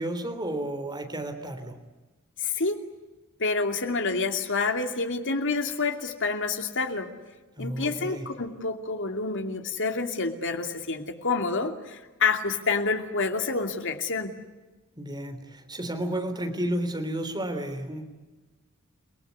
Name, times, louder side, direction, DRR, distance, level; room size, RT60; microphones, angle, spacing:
voice 1, 0.0-1.8 7.6-8.3 15.0-18.0, right 1 dB, 20° right, 6 dB, 3.6 m, -32 dB
voice 2, 2.4-2.8 3.4-7.1 7.6-14.3, left 4 dB, 60° left, 5 dB, 2.7 m, -28 dB
30.0 x 19.0 x 9.7 m, 1.2 s
head